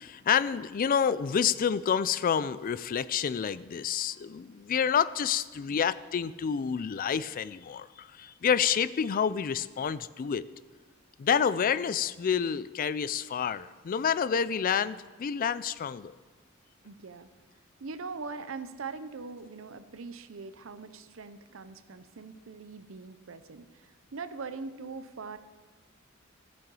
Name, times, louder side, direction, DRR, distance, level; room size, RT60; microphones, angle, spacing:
voice 1, 0.0-10.4 11.2-16.1, left 7 dB, 45° left, 16 dB, 0.3 m, -28 dB
voice 2, 16.8-17.3 17.8-25.4, right 4 dB, 70° right, 11 dB, 0.7 m, -42 dB
14.5 x 7.7 x 4.7 m, 1.4 s
head